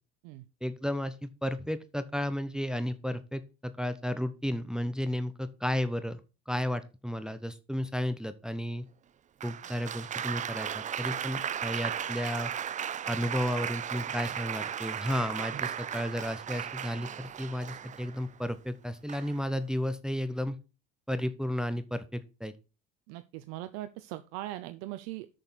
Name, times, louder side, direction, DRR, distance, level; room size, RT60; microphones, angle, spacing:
voice 1, 0.6-6.2 6.5-8.9 9.4-12.5 13.1-20.6 21.1-22.6, equal, ahead, 11 dB, 0.9 m, -33 dB
Applause, 9.4-18.3 19.1-19.5, right 9 dB, 25° right, 0.5 m, -36 dB
voice 2, 23.1-25.3, right 15 dB, 65° right, 11 dB, 0.9 m, -40 dB
6.5 x 6.5 x 7.6 m, 0.32 s
hypercardioid pair, 80°, 30 cm